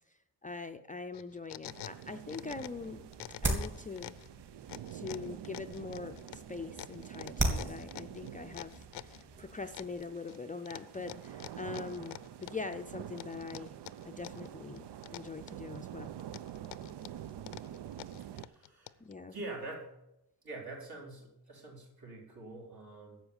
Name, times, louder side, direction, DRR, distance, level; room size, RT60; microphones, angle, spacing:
voice 1, 0.1-3.1 3.4-4.2 4.9-13.8 14.0-16.1 19.0-19.3, left 4 dB, 20° left, 6 dB, 0.4 m, -43 dB
sound 1, 1.1-2.9 3.1-4.3 4.7-9.2 9.7-10.4 10.7-12.8 13.2-14.5 14.8-15.8 16.2-19.1, left 14 dB, 85° left, 0.6 m, -47 dB
sound 2, 1.7-18.5, right 11 dB, 85° right, 0.7 m, -47 dB
sound 3, 2.4-10.1, right 1 dB, 30° right, 2.7 m, -39 dB
voice 2, 18.2-19.9 20.4-23.2, right 2 dB, 60° right, -2 dB, 4.5 m, -45 dB
12.0 x 7.9 x 8.0 m, 0.88 s
wide cardioid pair, 170°, 40 cm